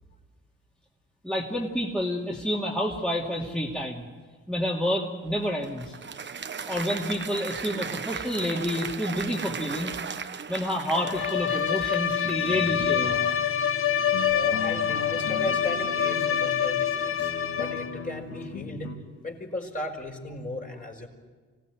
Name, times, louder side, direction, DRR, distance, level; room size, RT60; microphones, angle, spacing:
voice 1, 1.2-4.1 4.5-6.0 6.7-10.0 10.5-13.2, equal, 5° left, -3 dB, 2.6 m, -29 dB
Applause, 5.3-12.9, right 6 dB, 35° right, 1.2 m, -37 dB
Bowed string instrument, 10.9-18.0, left 8 dB, 45° left, 1.4 m, -26 dB
sound 1, 12.2-19.0, left 4 dB, 60° left, 2.6 m, -39 dB
voice 2, 14.3-18.9 19.2-21.1, left 1 dB, 25° left, 1 dB, 4.8 m, -36 dB
25.0 x 17.0 x 9.5 m, 1.4 s
cardioid pair, 90°, 30 cm